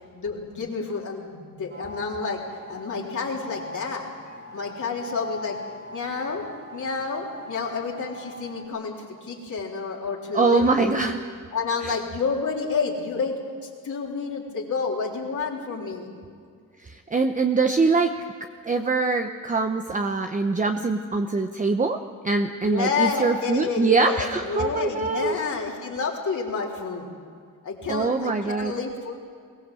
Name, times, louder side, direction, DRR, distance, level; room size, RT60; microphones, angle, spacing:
voice 1, 0.1-2.4 2.7-4.1 4.5-5.6 5.9-6.4 6.7-11.1 11.5-13.4 13.8-16.1 22.6-27.1 27.6-29.1, left 5 dB, 60° left, -3 dB, 3.8 m, -29 dB
sound 1, 1.7-8.6, left 2 dB, 40° right, 4.3 m, -41 dB
voice 2, 10.3-11.2 11.8-12.0 16.8-18.1 18.6-22.0 22.2-25.4 27.9-28.7, right 3 dB, 25° right, 5 dB, 0.9 m, -23 dB
22.5 x 18.0 x 7.7 m, 2.2 s
wide cardioid pair, 130°, 33 cm